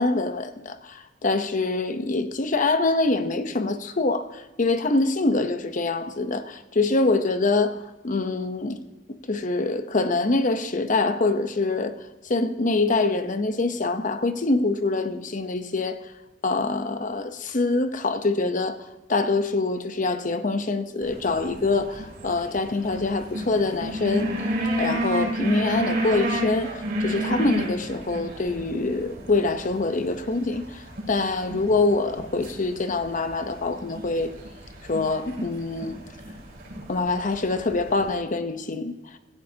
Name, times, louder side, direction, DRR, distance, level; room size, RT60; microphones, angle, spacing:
voice 1, 0.0-8.8 9.3-11.9 12.3-16.0 16.4-18.8 19.1-24.3 24.8-30.8 31.1-34.3 34.9-36.0 36.9-38.9, left 3 dB, 45° left, 0.8 m, -25 dB
sound 1, 21.0-38.2, right 1 dB, 60° right, 4.1 m, -32 dB
16.5 x 15.0 x 2.9 m
head